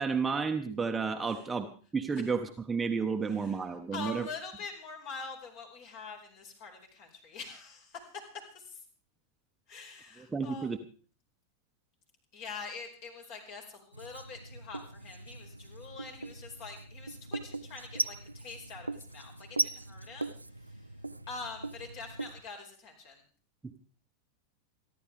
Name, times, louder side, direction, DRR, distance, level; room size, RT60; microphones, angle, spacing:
voice 1, 0.0-4.3 10.2-10.8 23.6-23.7, right 5 dB, 10° right, 5 dB, 1.2 m, -32 dB
voice 2, 3.3-3.6 3.9-8.0 8.5-8.8 9.7-10.7 12.3-20.9 21.3-23.2, left 4 dB, 45° left, 3 dB, 5.0 m, -45 dB
Writing, 13.9-22.4, right 2 dB, 85° right, 0.7 m, -39 dB
28.5 x 11.5 x 3.5 m, 0.39 s
figure-of-eight pair, 90°, 0 cm